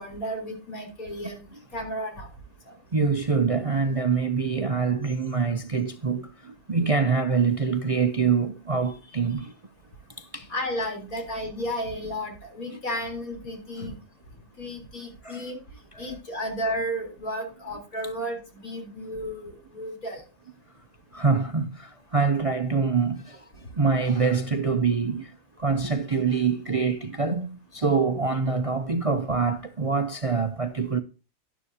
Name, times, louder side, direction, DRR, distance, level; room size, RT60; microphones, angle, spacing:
voice 1, 0.0-1.4 1.7-2.3 2.7-2.8 10.5-14.0 14.6-15.6 16.0-20.2, equal, 85° left, 4.3 m, -33 dB
voice 2, 2.9-9.5 10.2-10.5 12.7-12.8 15.2-15.4 15.9-16.1 21.1-31.0, right 5 dB, 40° right, 0.5 m, -25 dB
12.0 x 11.5 x 2.8 m
omnidirectional pair, 1.4 m